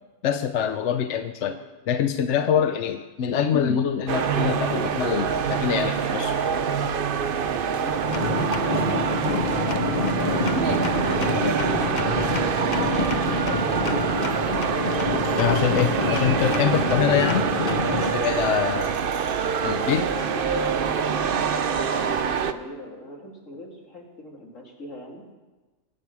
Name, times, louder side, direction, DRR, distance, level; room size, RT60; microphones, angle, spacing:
voice 1, 0.2-1.6 1.9-6.3 15.4-18.9 19.6-20.1, left 8 dB, 70° left, 9 dB, 0.9 m, -24 dB
voice 2, 2.1-2.6 7.6-10.2 15.6-16.7 19.8-25.2, left 1 dB, 90° left, -1 dB, 3.1 m, -42 dB
sound 1, 4.1-22.5, right 7 dB, 50° right, 0.8 m, -25 dB
sound 2, 8.1-18.1, left 5 dB, 45° left, 0.8 m, -28 dB
22.5 x 8.8 x 4.7 m, 1.2 s
omnidirectional pair, 1.3 m